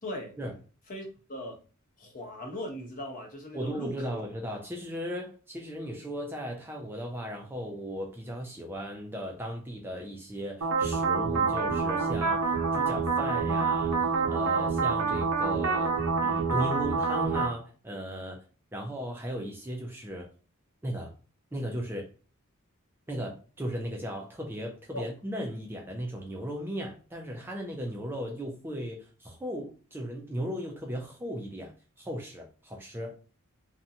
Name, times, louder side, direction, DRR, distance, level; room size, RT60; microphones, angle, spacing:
voice 1, 0.0-0.4 0.9-1.6 2.0-4.2 24.9-25.1, left 1 dB, 40° left, 0.8 m, -39 dB
voice 2, 3.5-15.9 16.2-18.4 18.7-20.3 20.8-21.1 21.5-22.1 23.1-33.1, equal, 10° right, 0.4 m, -36 dB
sound 1, 10.6-17.5, right 4 dB, 70° right, 0.7 m, -27 dB
2.6 x 2.2 x 2.6 m
head